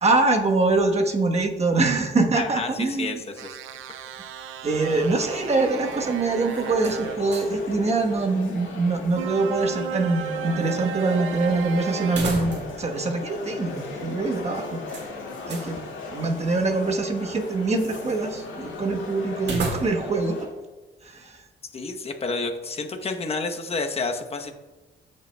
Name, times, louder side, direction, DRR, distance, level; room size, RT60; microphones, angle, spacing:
voice 1, 0.0-3.2 4.6-14.8 15.5-15.8 16.1-20.4 21.0-21.4, right 3 dB, 35° right, 3 dB, 1.1 m, -24 dB
voice 2, 2.4-3.6 21.7-24.6, left 3 dB, 30° left, 5 dB, 0.9 m, -30 dB
sound 1, 3.4-7.2 9.1-12.2, right 8 dB, 90° right, 0.5 m, -34 dB
sound 2, 4.7-20.5, left 3 dB, 80° left, 1.9 m, -37 dB
sound 3, 6.8-7.7 8.0-8.1 12.0-12.9 13.2-13.3 14.9-15.7 19.4-20.2, right 2 dB, 60° right, 1.8 m, -33 dB
15.0 x 5.3 x 2.2 m, 1.2 s
cardioid pair, 90°, 20 cm